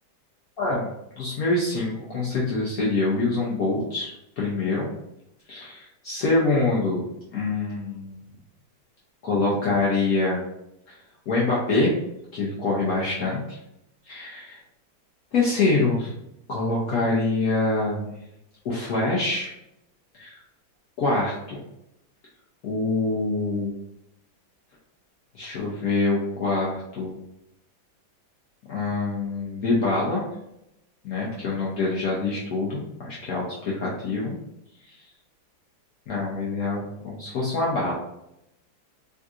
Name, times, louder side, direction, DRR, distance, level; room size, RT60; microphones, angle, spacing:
voice 1, 0.6-0.9 1.2-4.9 5.5-7.0 7.3-8.2 9.2-10.4 10.9-11.0 11.3-11.9 12.3-13.6 14.1-14.6 15.3-16.1 16.5-18.1 18.6-19.5 20.2-20.4 21.0-21.6 22.6-23.7 25.3-27.2 28.7-30.2 31.0-34.3 36.1-37.9, left 3 dB, 65° left, -5 dB, 0.9 m, -25 dB
3.6 x 2.7 x 2.4 m, 0.81 s
omnidirectional pair, 2.2 m